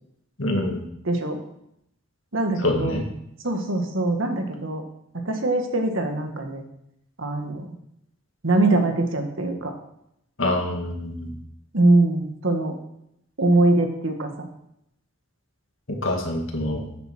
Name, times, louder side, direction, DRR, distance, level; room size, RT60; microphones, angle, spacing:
voice 1, 0.4-0.8 2.6-3.0 10.4-11.3 16.0-16.8, left 1 dB, 60° left, 2 dB, 2.1 m, -25 dB
voice 2, 1.1-1.4 2.3-3.1 3.4-4.8 5.3-6.6 7.2-7.7 8.4-9.7 11.7-12.8 13.4-14.5, right 2 dB, 60° right, 4 dB, 1.7 m, -22 dB
9.4 x 8.1 x 6.0 m, 0.77 s
head